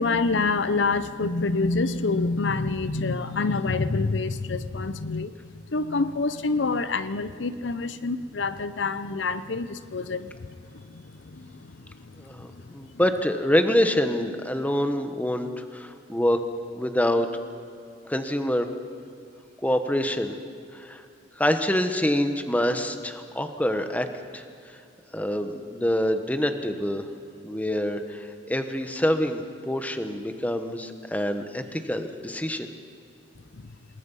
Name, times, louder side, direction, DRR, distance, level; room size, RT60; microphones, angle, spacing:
voice 1, 0.0-12.2 33.6-33.7, left 3 dB, 70° left, 13 dB, 0.7 m, -27 dB
voice 2, 12.2-16.4 16.7-17.3 18.0-18.7 19.6-20.3 20.7-21.0 21.4-24.1 24.3-24.8 25.1-27.1 27.4-32.7, left 1 dB, 10° left, 7 dB, 1.2 m, -26 dB
28.0 x 20.5 x 5.6 m, 2.5 s
head